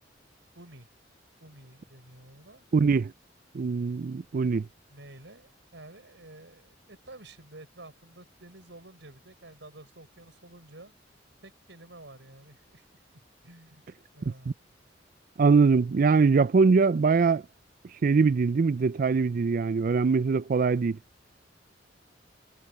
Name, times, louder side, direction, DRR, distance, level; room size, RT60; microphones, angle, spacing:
voice 1, 0.5-0.9 1.4-2.7 4.9-10.9 11.4-13.9 14.1-14.6, right 2 dB, 75° right, 5.9 m, -50 dB
voice 2, 2.7-3.1 3.5-4.7 15.4-17.4 18.0-21.0, right 4 dB, 50° right, 0.4 m, -22 dB
head